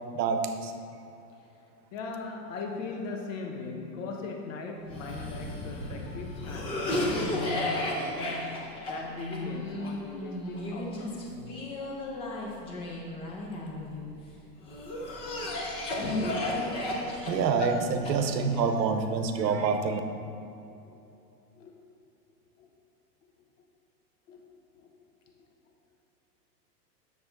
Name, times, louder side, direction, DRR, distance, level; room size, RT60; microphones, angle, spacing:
voice 1, 0.1-0.7 16.8-20.0, right 5 dB, 85° right, 7 dB, 0.9 m, -27 dB
voice 2, 1.9-11.6 11.9-12.8 20.9-21.0 21.5-21.7 22.6-22.7 24.3-24.4 24.7-24.9, left 4 dB, 50° left, 2 dB, 1.0 m, -39 dB
Cough, 4.9-14.1 14.7-18.6, left 1 dB, 10° left, 0.5 m, -33 dB
9.2 x 6.7 x 3.9 m, 2.8 s
supercardioid pair, 150°, 49 cm